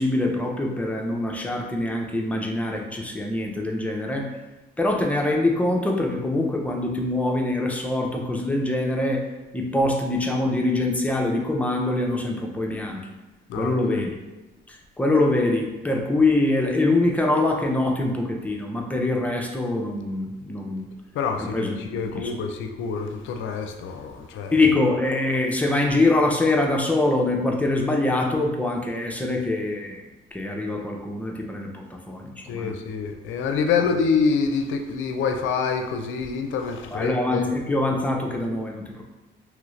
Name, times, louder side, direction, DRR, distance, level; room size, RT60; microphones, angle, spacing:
voice 1, 0.0-4.3 4.8-9.3 9.5-13.0 13.5-14.2 14.7-20.9 21.4-22.3 24.5-30.0 30.3-32.7 33.8-33.9 36.9-39.0, left 2 dB, 5° left, 0 dB, 0.5 m, -24 dB
voice 2, 13.5-14.0 21.1-24.6 32.5-37.5, left 5 dB, 80° left, 5 dB, 0.4 m, -26 dB
3.0 x 2.5 x 3.1 m, 1.1 s
cardioid pair, 90°, 20 cm